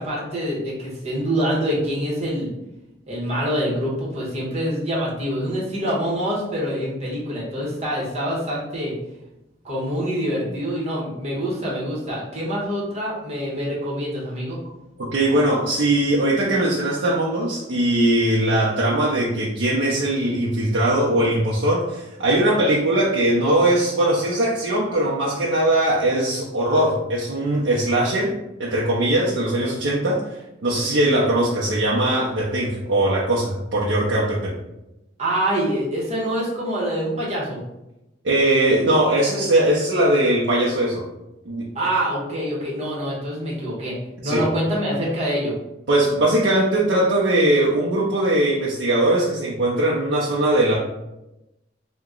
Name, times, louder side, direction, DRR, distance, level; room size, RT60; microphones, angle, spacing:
voice 1, 0.0-2.5 3.1-8.9 9.6-14.6 35.2-37.6 41.7-43.9 44.2-45.5, equal, 40° right, -5 dB, 1.1 m, -25 dB
voice 2, 15.0-28.3 28.6-30.2 30.6-34.5 38.2-41.0 41.5-41.7 44.2-44.4 45.9-50.8, right 1 dB, 90° right, -5 dB, 0.6 m, -20 dB
2.8 x 2.2 x 3.6 m, 0.92 s
head